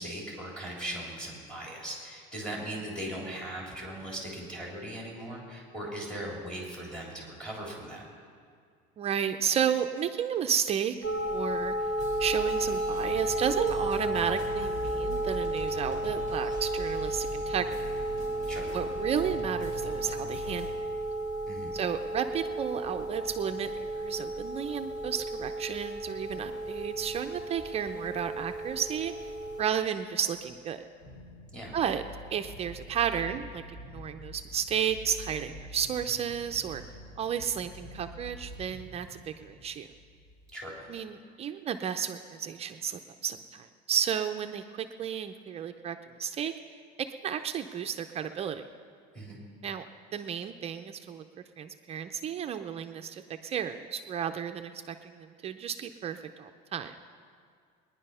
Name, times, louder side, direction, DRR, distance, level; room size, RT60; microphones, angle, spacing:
voice 1, 0.0-8.0 18.5-18.8 21.5-21.7 31.5-31.8 40.5-40.8 49.1-49.4, right 1 dB, 5° left, -3 dB, 3.4 m, -39 dB
voice 2, 9.0-10.9 11.3-11.7 12.2-17.8 18.7-20.9 21.7-29.1 29.6-30.9 31.7-32.0 32.3-33.6 33.9-36.8 37.2-39.9 40.9-46.5 47.0-48.6 49.6-49.8 50.1-51.2 51.6-57.0, right 8 dB, 30° right, 7 dB, 0.5 m, -32 dB
sound 1, 11.0-29.6, right 1 dB, 20° left, 1.8 m, -33 dB
sound 2, 12.0-20.7, right 1 dB, 40° left, 3.4 m, -42 dB
sound 3, 29.1-29.9 30.3-30.6 31.0-41.0, equal, 85° left, 3.9 m, -48 dB
20.5 x 10.5 x 5.5 m, 2.1 s
cardioid pair, 155°, 20 cm